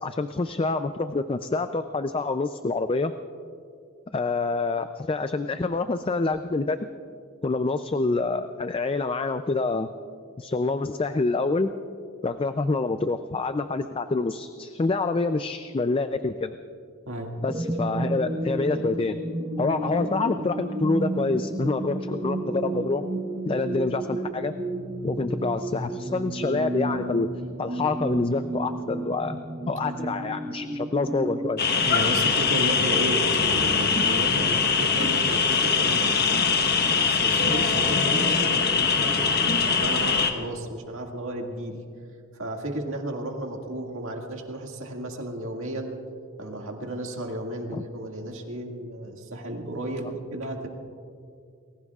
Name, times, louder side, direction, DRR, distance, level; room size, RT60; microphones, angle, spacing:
voice 1, 0.0-3.1 4.1-6.8 7.4-9.9 10.4-11.7 12.2-16.6 17.4-19.2 19.6-23.0 23.5-24.5 25.0-27.3 27.6-29.4 29.7-31.6 47.7-47.8, left 3 dB, 25° left, 9 dB, 0.4 m, -27 dB
voice 2, 17.1-17.4 31.8-41.8 42.3-46.0 46.4-50.7, right 1 dB, 65° right, 1 dB, 2.1 m, -33 dB
sound 1, 17.5-31.5, right 1 dB, 30° right, 1.1 m, -32 dB
sound 2, 31.6-40.3, left 5 dB, 50° left, 1.2 m, -22 dB
29.0 x 20.5 x 2.4 m, 2.3 s
head